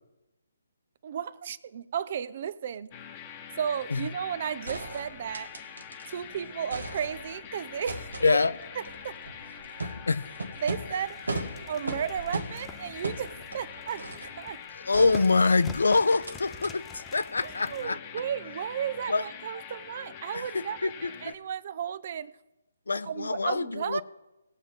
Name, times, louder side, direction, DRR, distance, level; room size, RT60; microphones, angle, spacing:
voice 1, 1.0-2.9 3.6-5.5 6.1-8.4 8.8-9.2 10.6-11.4 11.7-14.1 14.4-14.6 17.4-22.3 23.0-24.0, right 8 dB, 45° right, 0.5 m, -34 dB
sound 1, 2.9-21.3, left 8 dB, 30° left, 1.0 m, -45 dB
sound 2, 4.2-4.3 4.7-6.2 6.5-7.4 7.9-14.4 14.9-15.8 16.2-16.4 16.6-16.7, right 2 dB, 75° right, 1.3 m, -38 dB
voice 2, 8.2-8.6 9.8-10.3 14.8-18.0 19.1-19.2 20.3-21.1 22.9-24.0, left 3 dB, 70° left, 0.5 m, -25 dB
sound 3, 11.1-17.8, left 5 dB, 10° left, 0.6 m, -48 dB
18.5 x 7.2 x 3.6 m
figure-of-eight pair, 140°, 0 cm